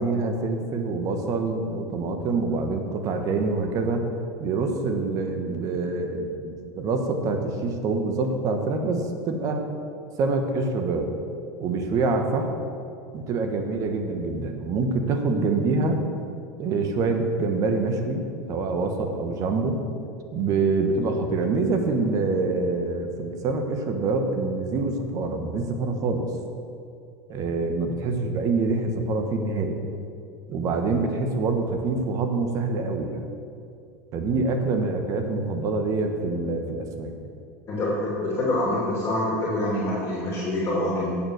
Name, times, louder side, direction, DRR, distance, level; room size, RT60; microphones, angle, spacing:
voice 1, 0.0-4.0 4.4-9.6 10.2-11.1 11.6-12.5 13.1-16.0 16.6-18.2 18.5-19.8 20.3-26.3 27.3-29.8 30.5-33.3 34.1-37.1, right 3 dB, 40° right, 5 dB, 1.2 m, -25 dB
voice 2, 37.7-41.2, left 1 dB, 30° left, -5 dB, 2.6 m, -26 dB
8.7 x 7.0 x 6.4 m, 2.4 s
supercardioid pair, 125°, 8 cm